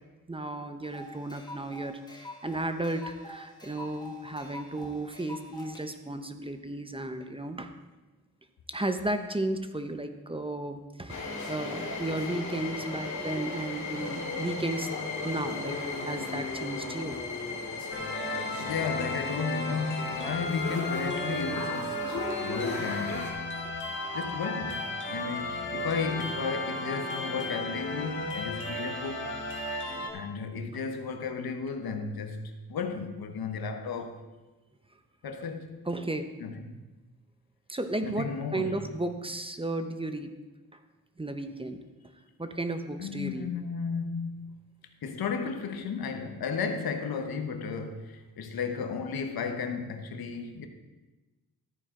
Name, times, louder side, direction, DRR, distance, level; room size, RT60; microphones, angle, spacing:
voice 1, 0.3-7.7 8.7-14.9 15.2-17.2 35.9-36.3 37.7-40.3 41.2-41.8 42.4-43.5, right 2 dB, 15° right, 0.9 m, -34 dB
sound 1, 0.8-5.8, left 1 dB, 10° left, 1.9 m, -46 dB
sound 2, 11.1-23.3, left 3 dB, 55° left, 2.2 m, -36 dB
sound 3, 17.9-30.1, left 1 dB, 35° left, 1.9 m, -34 dB
voice 2, 18.6-23.4 24.1-29.4 30.1-34.2 35.2-35.8 36.4-36.8 38.0-38.7 43.0-44.5 45.0-50.7, left 5 dB, 85° left, 1.2 m, -34 dB
13.5 x 9.2 x 3.8 m
cardioid pair, 70°, 35 cm